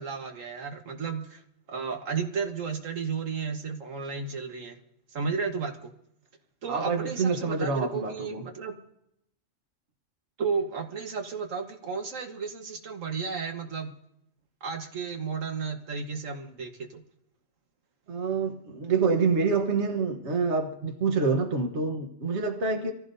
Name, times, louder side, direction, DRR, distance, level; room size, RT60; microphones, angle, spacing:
voice 1, 0.0-1.4 1.7-4.8 5.1-5.9 6.6-8.8 10.4-13.9 14.6-17.0, right 5 dB, 90° right, 1.7 m, -33 dB
voice 2, 6.7-8.4 18.1-22.9, right 4 dB, 65° right, 1.5 m, -27 dB
25.5 x 15.0 x 2.7 m
omnidirectional pair, 1.3 m